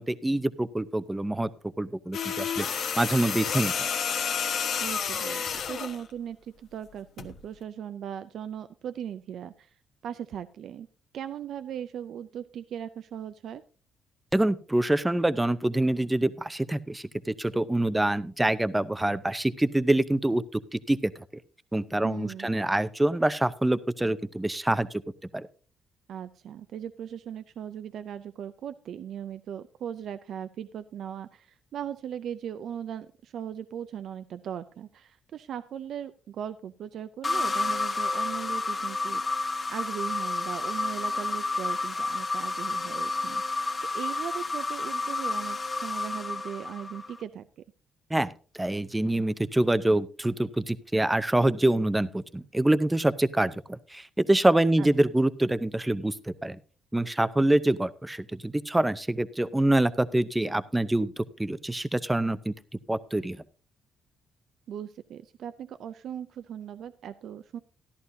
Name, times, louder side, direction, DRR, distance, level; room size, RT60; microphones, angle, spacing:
voice 1, 0.0-1.5 1.8-3.9 14.3-21.1 21.7-24.9 25.3-25.4 48.1-48.3 48.6-56.6 56.9-62.5 62.9-63.4, right 1 dB, 10° right, 14 dB, 0.6 m, -26 dB
sound 1, 2.1-6.0 7.2-7.4, left 7 dB, 65° left, 1.2 m, -30 dB
voice 2, 4.8-10.9 11.1-13.6 22.0-22.5 26.1-43.7 43.9-47.6 54.8-54.9 64.7-67.6, right 9 dB, 70° right, 11 dB, 0.4 m, -38 dB
sound 2, 37.2-47.2, left 3 dB, 30° left, 1.6 m, -30 dB
14.0 x 11.0 x 2.7 m, 0.38 s
cardioid pair, 90°, 0 cm